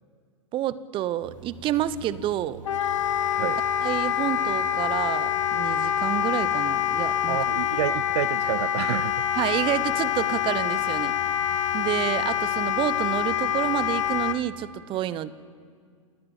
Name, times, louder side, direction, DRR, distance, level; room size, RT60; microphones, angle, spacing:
voice 1, 0.5-2.6 3.8-7.4 9.4-11.2 11.7-15.3, right 12 dB, 30° right, 0.8 m, -29 dB
sound 1, 1.2-14.3, right 4 dB, 75° right, 2.6 m, -45 dB
Wind instrument woodwind instrument, 2.7-14.4, left 10 dB, 70° left, 0.9 m, -26 dB
voice 2, 7.3-9.2, right 16 dB, 55° right, 0.4 m, -29 dB
27.5 x 10.5 x 8.9 m
hypercardioid pair, 105°, 17 cm